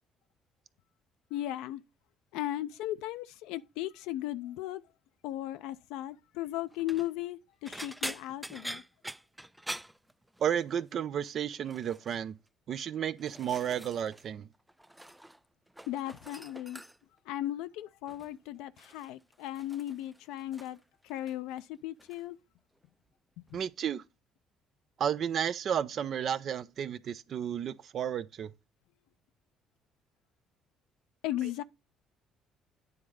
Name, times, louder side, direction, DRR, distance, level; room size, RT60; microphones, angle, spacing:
voice 1, 1.3-1.8 2.3-4.8 5.2-8.8 15.9-16.8 17.3-20.8 21.0-22.4 23.4-23.6 31.2-31.6, left 14 dB, 80° left, 0.4 m, -36 dB
sound 1, 6.7-7.1 7.6-10.7 11.0-11.3 11.7-12.2 12.8-14.3 14.5-15.4 15.7-17.2 18.1-18.4 18.8-20.8 21.1-21.6 22.0-22.2 23.5-23.6, right 1 dB, 5° right, 0.3 m, -44 dB
voice 2, 10.4-12.3 12.7-14.5 23.5-24.0 25.0-28.5, right 9 dB, 55° right, 0.6 m, -32 dB
9.5 x 3.7 x 6.3 m
supercardioid pair, 65°, 0 cm